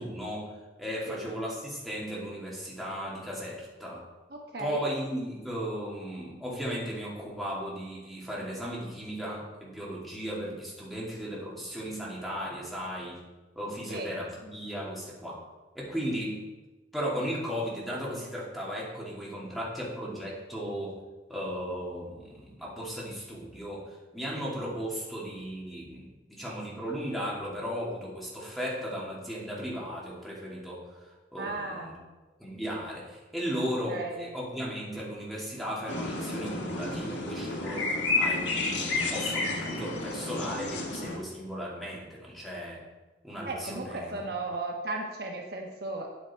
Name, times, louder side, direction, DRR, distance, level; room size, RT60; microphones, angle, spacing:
voice 1, 0.0-4.0 4.6-13.2 13.6-15.4 15.7-16.5 16.9-21.0 21.3-32.0 32.4-42.8 43.2-44.1, equal, ahead, -6 dB, 2.8 m, -36 dB
voice 2, 4.3-4.8 13.9-14.1 31.4-31.9 33.9-34.3 43.4-46.1, right 2 dB, 60° right, 2 dB, 1.1 m, -35 dB
sound 1, 35.9-41.2, left 3 dB, 90° left, 1.8 m, -31 dB
8.9 x 8.5 x 4.5 m, 1.2 s
head